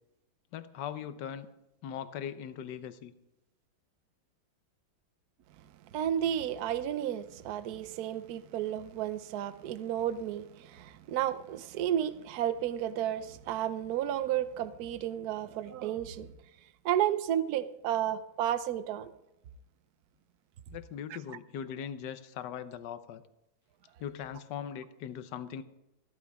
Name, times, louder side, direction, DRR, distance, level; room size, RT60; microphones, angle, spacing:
voice 1, 0.5-1.5 1.8-3.1 20.7-23.2 24.0-25.6, left 8 dB, 65° left, 1.4 m, -40 dB
voice 2, 5.9-16.3 16.8-19.1, right 11 dB, 65° right, 1.1 m, -32 dB
15.0 x 13.5 x 3.5 m
omnidirectional pair, 2.2 m